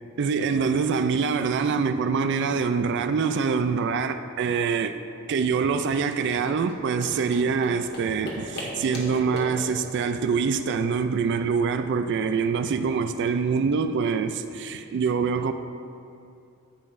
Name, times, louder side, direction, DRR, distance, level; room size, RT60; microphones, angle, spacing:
voice 1, 0.2-5.0 5.3-15.5, right 5 dB, 55° right, 0.3 m, -25 dB
sound 1, 6.6-11.8, left 1 dB, 55° left, 1.7 m, -39 dB
10.0 x 8.9 x 2.6 m
head